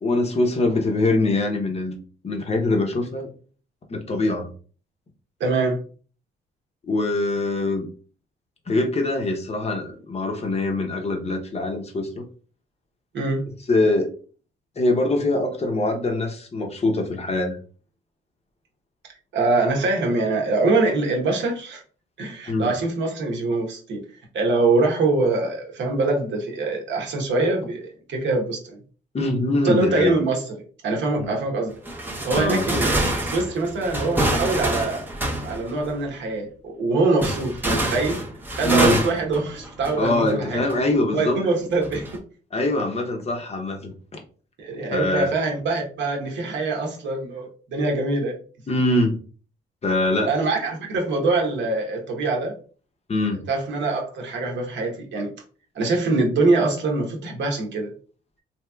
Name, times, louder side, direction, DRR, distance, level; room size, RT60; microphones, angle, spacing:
voice 1, 0.0-2.0 2.2-3.3 3.9-4.5 6.9-7.9 8.7-12.2 13.7-14.1 14.8-17.6 22.5-22.7 29.1-30.1 31.2-31.4 32.3-32.6 38.6-39.0 40.0-41.4 42.5-43.9 44.9-45.4 48.7-49.2 49.8-50.3 53.1-53.4, left 2 dB, 30° left, 3 dB, 0.7 m, -23 dB
voice 2, 5.4-5.8 13.1-13.4 19.3-21.8 22.2-24.0 24.3-28.8 29.6-30.4 30.8-31.7 32.3-35.0 35.4-38.2 38.5-40.6 41.1-42.1 44.6-48.4 50.3-52.5 53.5-55.3 55.7-57.9, right 3 dB, 65° right, 0 dB, 1.0 m, -23 dB
sound 1, 31.9-35.9 37.2-40.3 40.7-40.8 41.8-42.2, right 1 dB, 10° right, 0.7 m, -26 dB
3.1 x 2.9 x 2.3 m, 0.40 s
cardioid pair, 90°, 20 cm